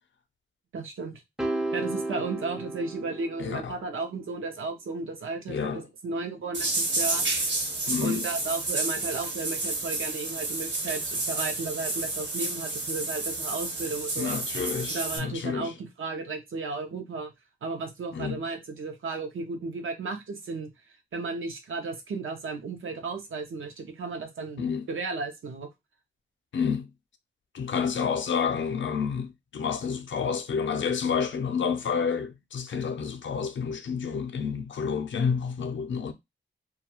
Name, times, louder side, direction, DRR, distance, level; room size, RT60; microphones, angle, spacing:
voice 1, 0.7-1.2 1.7-7.3 8.0-14.4 14.9-17.3 17.6-20.7 21.1-25.7, right 3 dB, 85° right, 0.6 m, -34 dB
sound 1, 1.4-3.8, right 2 dB, 5° right, 0.3 m, -33 dB
voice 2, 3.4-3.8 5.5-5.8 7.9-8.3 14.2-15.7 18.1-18.4 24.6-24.9 26.5-26.9 27.5-36.1, left 6 dB, 70° left, 0.5 m, -29 dB
sound 2, 6.5-15.2, right 2 dB, 65° right, 0.9 m, -30 dB
2.3 x 2.2 x 2.9 m
wide cardioid pair, 105°, 20 cm